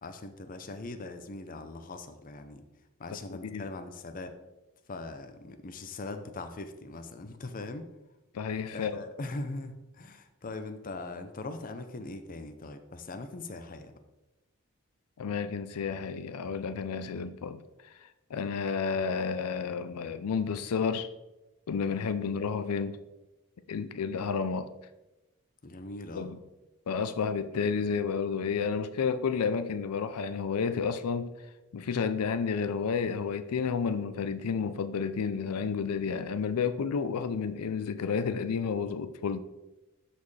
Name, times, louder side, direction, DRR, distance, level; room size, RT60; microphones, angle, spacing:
voice 1, 0.0-2.6 3.0-4.3 4.9-7.8 8.7-13.9 22.3-22.4 25.6-26.3, left 2 dB, 40° left, 0.6 m, -41 dB
voice 2, 8.3-9.0 15.2-21.1 21.7-23.0 23.7-24.7 26.1-26.4 26.9-31.3 31.7-39.4, left 6 dB, 90° left, 0.5 m, -31 dB
12.5 x 4.3 x 3.2 m
head